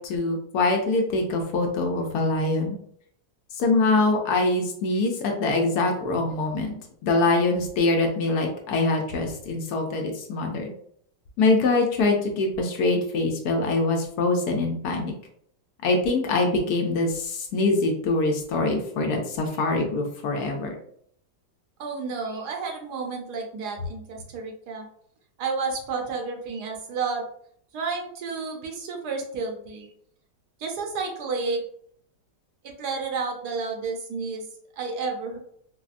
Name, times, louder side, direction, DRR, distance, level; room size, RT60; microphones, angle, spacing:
voice 1, 0.0-2.8 3.5-6.7 7.0-10.7 11.4-15.1 15.8-20.8, left 2 dB, 70° left, 2 dB, 1.0 m, -24 dB
voice 2, 21.8-24.9 25.4-27.2 27.7-29.9 30.6-31.6 32.6-34.5 34.8-35.4, right 4 dB, 75° right, 2 dB, 1.1 m, -31 dB
4.0 x 2.1 x 2.4 m, 0.65 s
omnidirectional pair, 1.9 m